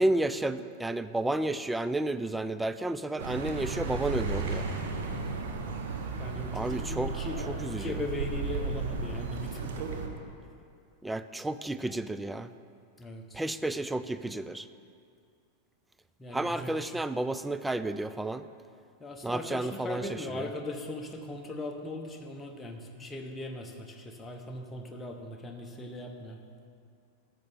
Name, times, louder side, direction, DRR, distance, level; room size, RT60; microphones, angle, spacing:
voice 1, 0.0-4.7 6.5-7.1 7.5-7.9 11.0-12.5 13.3-14.7 16.3-18.5 19.2-20.0 20.3-20.5, right 2 dB, 5° right, 12 dB, 0.3 m, -31 dB
Accelerating revving vroom, 3.2-10.1, right 4 dB, 55° right, 0.9 m, -34 dB
voice 2, 6.2-7.4 7.8-9.9 13.0-13.4 16.2-17.0 19.0-26.4, left 1 dB, 15° left, 2 dB, 1.0 m, -39 dB
13.5 x 7.7 x 3.6 m, 2.4 s
figure-of-eight pair, 90°, 0 cm